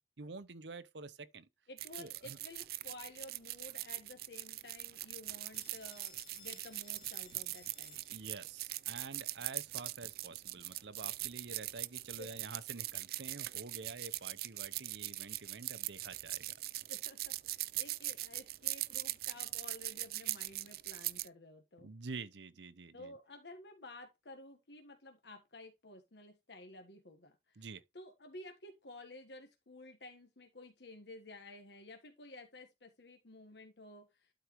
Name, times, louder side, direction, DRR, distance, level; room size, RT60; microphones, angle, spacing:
voice 1, 0.2-1.5 2.0-2.4 8.1-16.5 21.8-23.1 27.6-27.8, right 4 dB, 80° right, 0.8 m, -48 dB
voice 2, 1.7-8.0 12.2-12.4 16.9-21.9 22.9-27.7 27.9-34.3, left 2 dB, 75° left, 1.4 m, -53 dB
sound 1, 1.8-21.3, right 17 dB, 55° right, 0.4 m, -41 dB
Telephone, 5.5-8.5, left 6 dB, 60° left, 2.9 m, -59 dB
12.0 x 4.6 x 3.0 m
head